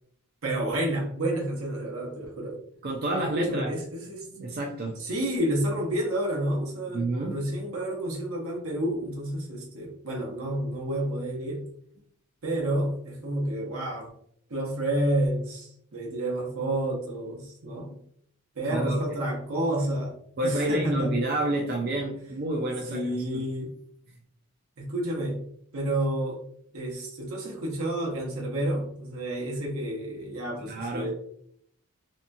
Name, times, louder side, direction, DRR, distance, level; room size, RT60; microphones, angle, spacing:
voice 1, 0.4-2.6 3.2-4.3 5.0-11.7 12.4-14.1 14.5-18.0 18.5-20.2 20.4-21.2 22.9-23.7 24.8-25.4 25.7-26.4 26.7-31.1, right 1 dB, 80° right, -2 dB, 0.9 m, -30 dB
voice 2, 2.8-3.7 4.4-5.0 6.9-7.4 18.6-19.0 20.4-23.0 23.3-23.4 30.6-31.1, right 1 dB, 45° right, -1 dB, 0.4 m, -29 dB
2.8 x 2.2 x 2.5 m, 0.68 s
head